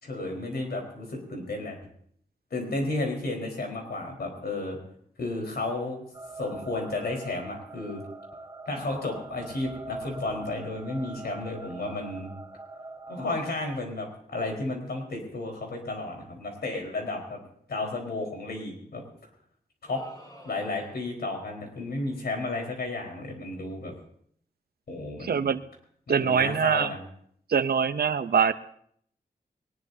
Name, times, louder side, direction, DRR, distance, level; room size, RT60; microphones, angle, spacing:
voice 1, 0.0-1.8 2.5-4.8 5.2-6.0 6.4-8.0 8.6-12.3 13.1-17.4 17.7-19.0 19.8-20.0 20.4-23.9 24.9-25.5 26.1-27.0, left 2 dB, 90° left, 1 dB, 4.4 m, -33 dB
sound 1, 6.1-13.3, right 2 dB, 20° right, 3.2 m, -43 dB
sound 2, 19.8-21.2, equal, 25° left, 5.0 m, -50 dB
voice 2, 25.2-25.6 26.1-26.9 27.5-28.5, right 7 dB, 80° right, 12 dB, 0.7 m, -23 dB
21.0 x 19.0 x 2.8 m, 0.65 s
wide cardioid pair, 80°, 16 cm